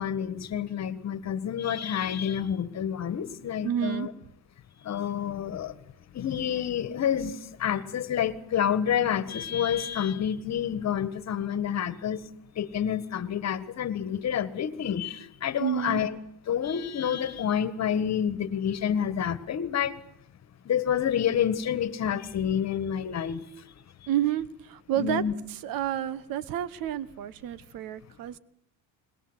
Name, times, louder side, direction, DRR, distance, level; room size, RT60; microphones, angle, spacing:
voice 1, 0.0-4.1 4.8-5.8 6.1-12.2 12.5-16.1 16.5-19.9 20.6-23.4 24.9-25.3, left 9 dB, 45° left, 15 dB, 1.7 m, -28 dB
voice 2, 3.6-4.1 15.6-16.0 24.1-25.2 25.5-28.4, right 11 dB, 65° right, 19 dB, 1.2 m, -30 dB
22.5 x 20.5 x 8.2 m, 0.70 s
cardioid pair, 110°, 37 cm